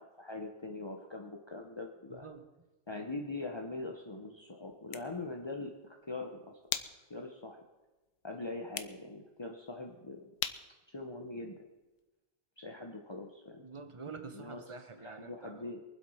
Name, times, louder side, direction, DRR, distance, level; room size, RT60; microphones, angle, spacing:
voice 1, 0.0-2.3 2.9-6.6 7.1-7.6 8.2-10.3 10.9-11.6 12.6-13.6 14.3-14.6 15.0-15.8, left 2 dB, 25° left, 2 dB, 0.6 m, -42 dB
voice 2, 2.1-2.4 13.6-15.7, right 4 dB, 35° right, 9 dB, 0.5 m, -47 dB
sound 1, 4.7-12.1, left 10 dB, 75° left, 1.5 m, -45 dB
23.5 x 7.9 x 5.7 m, 1.1 s
omnidirectional pair, 2.1 m